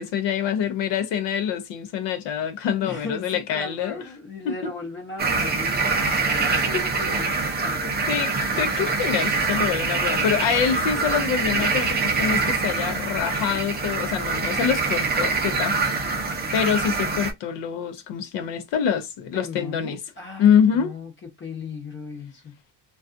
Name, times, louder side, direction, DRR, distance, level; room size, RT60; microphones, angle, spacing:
voice 1, 0.0-4.0 4.4-4.7 6.5-6.8 8.1-15.8 16.5-20.0 20.4-20.9, left 8 dB, 70° left, 0.6 m, -25 dB
voice 2, 2.8-7.3 7.6-8.2 19.3-21.1 21.4-22.5, left 4 dB, 25° left, 0.8 m, -37 dB
sound 1, 5.2-17.3, right 4 dB, 20° right, 0.5 m, -24 dB
2.4 x 2.3 x 2.5 m
cardioid pair, 140°, 44 cm